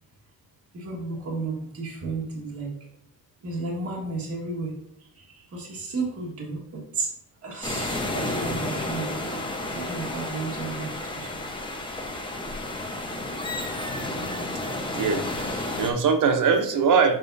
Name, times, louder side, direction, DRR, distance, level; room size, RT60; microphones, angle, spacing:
voice 1, 0.7-2.7 3.4-4.7 5.2-7.1 7.4-9.4 9.7-11.4, right 3 dB, 40° right, -3 dB, 1.7 m, -33 dB
sound 1, 7.6-15.9, left 2 dB, 15° left, 0.9 m, -31 dB
voice 2, 14.9-17.2, right 5 dB, 55° right, 6 dB, 0.8 m, -22 dB
7.4 x 5.2 x 2.6 m, 0.68 s
cardioid pair, 135°, 37 cm